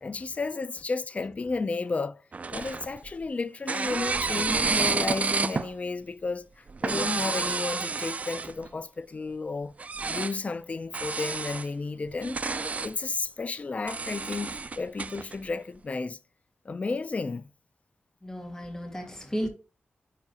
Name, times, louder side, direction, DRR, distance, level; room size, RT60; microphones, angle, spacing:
voice 1, 0.0-2.2 2.5-9.7 10.1-12.4 12.8-16.2 16.7-17.5, left 3 dB, 35° left, 0.4 m, -32 dB
sound 1, 2.3-3.2 3.7-5.7 6.7-8.7 9.8-10.3 10.9-11.7 12.1-12.9 13.9-15.4, right 4 dB, 40° right, 0.3 m, -30 dB
voice 2, 18.2-19.5, equal, 15° left, 1.9 m, -34 dB
9.7 x 3.9 x 2.8 m
wide cardioid pair, 90°, 4 cm